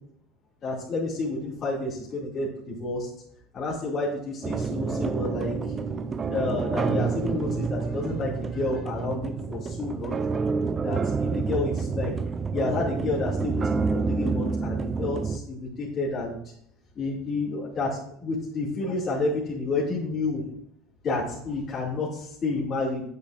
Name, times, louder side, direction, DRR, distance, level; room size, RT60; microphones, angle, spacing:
voice 1, 0.6-3.1 3.5-5.5 6.3-10.3 10.8-12.1 12.5-16.4 17.0-17.9 18.2-20.4 21.0-23.0, left 3 dB, 35° left, -8 dB, 2.3 m, -30 dB
sound 1, 4.4-15.4, right 4 dB, 25° right, 0.4 m, -28 dB
8.9 x 8.2 x 2.5 m, 0.68 s
supercardioid pair, 110°, 0 cm